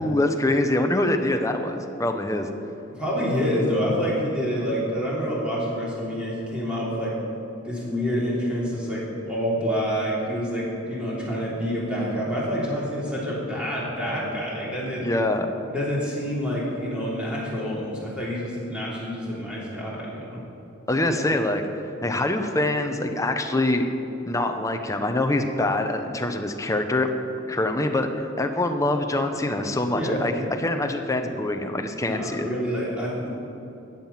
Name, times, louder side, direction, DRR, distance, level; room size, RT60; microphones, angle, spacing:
voice 1, 0.0-2.5 15.0-15.5 20.9-21.6 22.0-23.9 24.2-27.1 27.5-32.5, left 1 dB, 15° left, 5 dB, 0.8 m, -24 dB
voice 2, 2.9-7.2 7.6-15.1 15.7-20.4 29.9-30.4 32.0-33.3, equal, 5° right, -7 dB, 3.3 m, -27 dB
13.5 x 9.2 x 5.7 m, 2.9 s
head